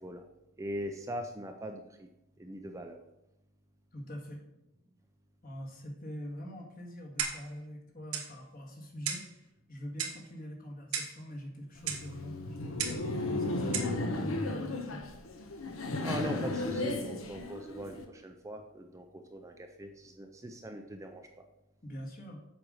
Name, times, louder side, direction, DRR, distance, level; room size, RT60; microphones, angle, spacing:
voice 1, 0.6-2.1 2.4-3.0 16.0-21.3, equal, 15° right, 4 dB, 0.5 m, -41 dB
voice 2, 3.9-4.4 5.4-13.0 13.3-15.0 21.8-22.4, equal, 40° left, 0 dB, 1.8 m, -44 dB
Clock, 7.2-7.6 8.1-8.3 9.1-9.3 10.0-10.3 10.9-11.2 11.9-12.1 12.8-13.1 13.7-14.0, right 7 dB, 90° right, 1.4 m, -35 dB
Laughter, 11.8-18.0, left 2 dB, 70° left, 1.1 m, -35 dB
7.6 x 5.2 x 6.4 m, 0.90 s
head